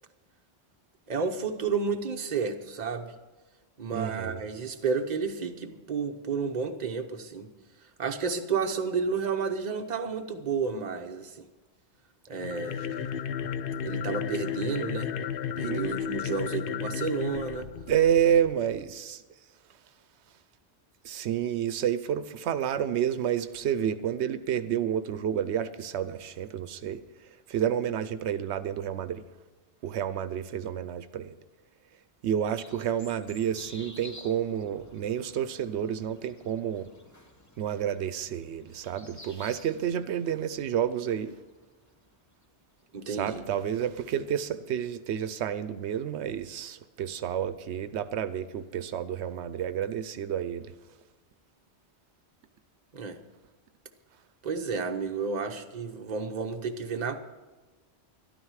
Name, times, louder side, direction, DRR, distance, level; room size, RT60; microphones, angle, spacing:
voice 1, 1.1-3.1 3.8-7.5 8.0-11.4 12.3-13.0 13.8-15.1 15.6-17.7 42.9-43.4 52.9-53.2 54.4-57.2, right 5 dB, 40° right, 5 dB, 1.0 m, -31 dB
voice 2, 3.9-4.4 15.6-15.9 17.9-19.2 21.0-27.0 27.5-29.2 29.8-31.3 32.2-36.9 37.6-41.3 43.1-50.7, right 9 dB, 85° right, 13 dB, 0.9 m, -29 dB
sound 1, 12.3-18.6, left 7 dB, 60° left, 0.7 m, -33 dB
sound 2, 32.6-42.8, left 1 dB, 15° left, 1.0 m, -52 dB
13.0 x 12.0 x 4.8 m, 1.2 s
omnidirectional pair, 1.1 m